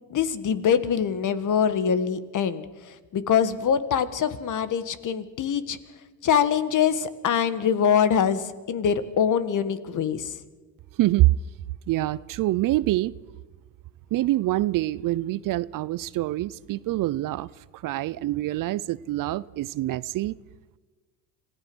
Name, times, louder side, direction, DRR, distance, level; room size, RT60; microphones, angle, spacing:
voice 1, 0.1-5.8 6.2-10.3, left 7 dB, 45° left, 1.7 m, -24 dB
voice 2, 11.0-11.3 11.9-13.1 14.1-20.4, right 16 dB, 50° right, 0.6 m, -25 dB
26.5 x 16.0 x 6.2 m
supercardioid pair, 85°, 43 cm